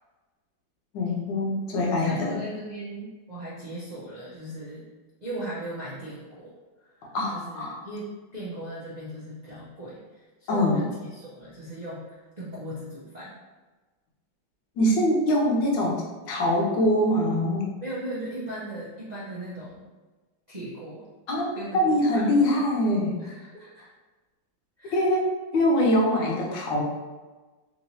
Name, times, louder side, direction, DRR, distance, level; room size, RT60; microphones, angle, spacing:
voice 1, 0.9-2.4 7.1-7.8 10.5-10.9 14.8-17.7 21.3-23.2 24.9-26.8, left 1 dB, 70° left, -1 dB, 1.3 m, -23 dB
voice 2, 1.8-4.9 5.2-6.5 6.8-12.1 12.4-13.3 17.8-19.8 20.5-21.1 21.5-21.8 22.1-22.3 23.2-23.9 24.8-25.0, right 1 dB, 80° right, -10 dB, 0.4 m, -38 dB
3.5 x 3.0 x 2.7 m, 1.3 s
omnidirectional pair, 2.1 m